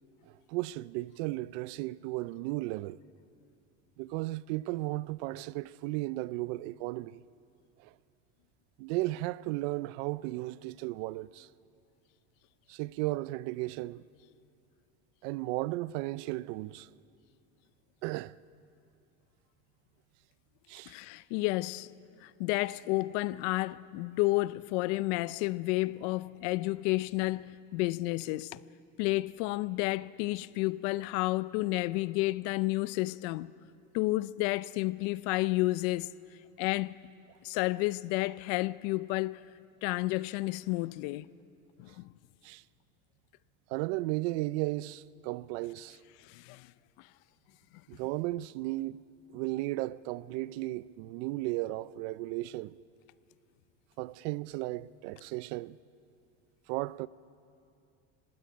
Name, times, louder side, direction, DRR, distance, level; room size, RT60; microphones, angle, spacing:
voice 1, 0.3-3.0 4.0-7.2 7.8-8.0 8.8-11.5 12.7-14.0 15.2-16.9 18.0-18.4 20.7-20.9 42.4-42.6 43.7-46.0 47.9-49.0 49.3-52.8 54.0-55.8 56.7-57.1, right 19 dB, 70° right, 0.6 m, -35 dB
voice 2, 20.9-21.9 22.2-28.6 29.0-33.5 33.9-36.1 36.6-36.9 37.4-39.4 39.8-41.3 41.8-42.1 46.2-46.7 47.0-47.1, left 20 dB, 70° left, 0.6 m, -31 dB
19.5 x 16.5 x 9.1 m
cardioid pair, 145°, 37 cm